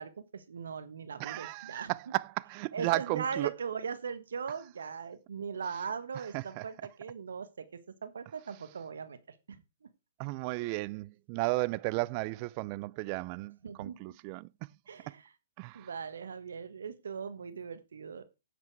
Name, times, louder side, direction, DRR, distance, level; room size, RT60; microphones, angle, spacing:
voice 1, 0.0-2.2 2.7-9.2 9.5-9.6 13.6-14.0 14.9-15.3 15.7-18.2, right 6 dB, 80° right, 1.4 m, -39 dB
voice 2, 1.2-3.5 6.3-6.6 10.2-14.5 15.6-15.9, right 22 dB, 35° right, 0.4 m, -34 dB
9.4 x 7.6 x 4.7 m
hypercardioid pair, 135°, 0 cm